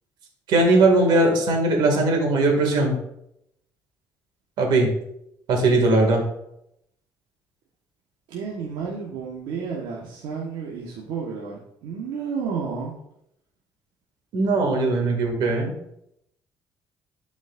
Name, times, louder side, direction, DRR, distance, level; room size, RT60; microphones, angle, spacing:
voice 1, 0.5-3.0 4.6-4.9 5.5-6.2 14.3-15.7, right 2 dB, 70° right, 2 dB, 2.2 m, -19 dB
voice 2, 8.3-12.9, right 5 dB, 85° right, -4 dB, 1.3 m, -31 dB
11.5 x 5.1 x 2.5 m, 0.77 s
cardioid pair, 130°, 8 cm